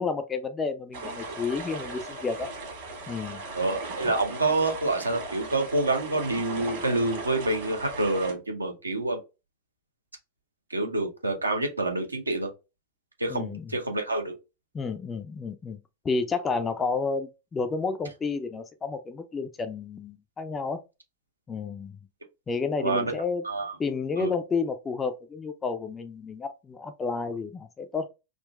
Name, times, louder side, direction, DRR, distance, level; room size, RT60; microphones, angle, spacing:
voice 1, 0.0-2.5 3.1-3.4 4.0-4.1 13.3-13.7 14.7-15.8 16.0-20.8 21.5-22.0 22.5-23.4 23.8-28.1, left 4 dB, 20° left, 0.3 m, -31 dB
sound 1, 0.9-8.3, right 2 dB, 55° right, 1.4 m, -38 dB
voice 2, 3.5-9.2 10.7-12.5 13.2-14.3 22.8-23.1 23.4-23.7 24.2-24.3, right 2 dB, 80° right, 0.7 m, -27 dB
3.7 x 2.2 x 2.2 m
figure-of-eight pair, 90°, 0 cm